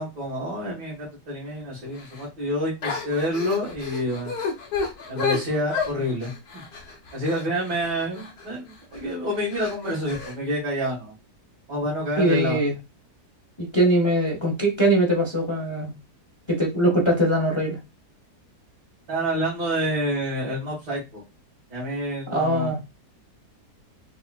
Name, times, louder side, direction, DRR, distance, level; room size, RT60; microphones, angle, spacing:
voice 1, 0.0-4.3 5.1-6.6 7.1-11.1 11.7-12.6 19.1-21.2 21.7-22.7, equal, 80° right, 2.2 m, -28 dB
sound 1, 2.0-2.3 2.8-8.5 8.9-9.1 9.5-10.3, left 4 dB, 70° left, 1.5 m, -31 dB
voice 2, 12.2-12.7 13.6-15.9 16.5-17.8 22.3-22.8, right 1 dB, 30° left, 0.5 m, -21 dB
4.7 x 2.5 x 2.3 m
omnidirectional pair, 1.7 m